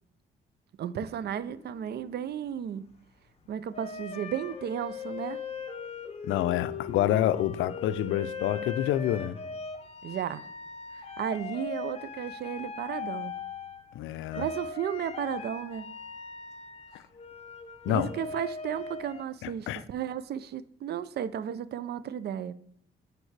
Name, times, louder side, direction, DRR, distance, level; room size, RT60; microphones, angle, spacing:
voice 1, 0.8-2.8 3.5-5.4 10.0-10.4 11.0-13.3 14.4-15.9 17.9-22.5, right 9 dB, 55° right, 0.4 m, -34 dB
sound 1, 1.2-2.5 3.7-14.0 14.3-19.2, left 5 dB, 30° left, 0.8 m, -40 dB
voice 2, 6.2-9.4 13.9-14.5 17.9-18.1 19.4-19.8, left 12 dB, 80° left, 0.4 m, -27 dB
8.5 x 4.7 x 3.2 m
cardioid pair, 90°, 20 cm